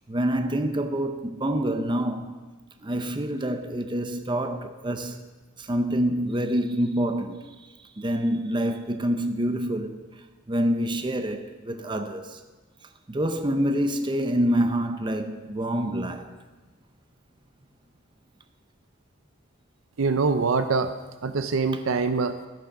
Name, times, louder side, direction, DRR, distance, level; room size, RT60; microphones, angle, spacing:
voice 1, 0.1-2.4 2.8-5.3 5.6-7.6 8.0-10.0 10.5-12.4 13.1-16.3, right 1 dB, 25° right, 0.6 m, -26 dB
voice 2, 20.0-20.9 21.2-22.4, right 4 dB, 80° right, 0.5 m, -24 dB
13.5 x 6.2 x 5.9 m
head